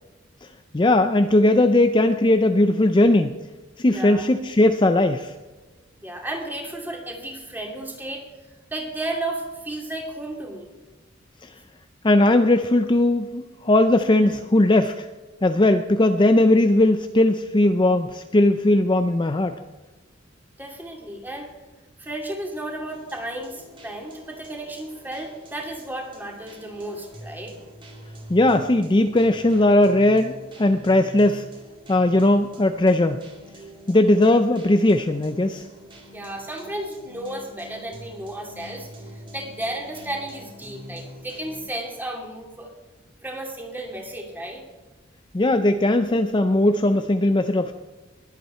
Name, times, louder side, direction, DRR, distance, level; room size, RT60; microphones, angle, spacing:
voice 1, 0.7-3.4 3.8-5.3 12.0-15.1 15.4-19.5 28.3-31.4 31.9-33.2 33.9-35.6 45.3-47.7, left 1 dB, 25° left, 8 dB, 0.5 m, -18 dB
voice 2, 3.9-4.3 6.0-8.3 8.7-10.7 20.6-21.5 22.0-27.6 36.1-42.7 43.2-44.7, right 1 dB, 10° right, 1 dB, 2.5 m, -33 dB
sound 1, 22.9-41.6, equal, 25° right, 2.5 m, -45 dB
20.5 x 8.4 x 4.4 m, 1.2 s
head